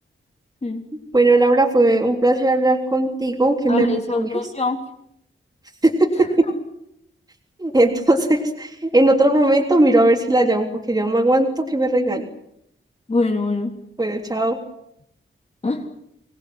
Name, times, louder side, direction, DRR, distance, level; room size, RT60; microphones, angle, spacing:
voice 1, 1.1-3.9 4.2-4.3 5.8-6.3 7.6-12.2 14.0-14.6, right 2 dB, 15° right, 1 dB, 3.5 m, -18 dB
voice 2, 3.7-4.8 13.1-13.7 15.6-15.8, left 3 dB, 30° left, 2 dB, 3.4 m, -22 dB
26.0 x 20.0 x 9.6 m, 0.77 s
wide cardioid pair, 145°, 21 cm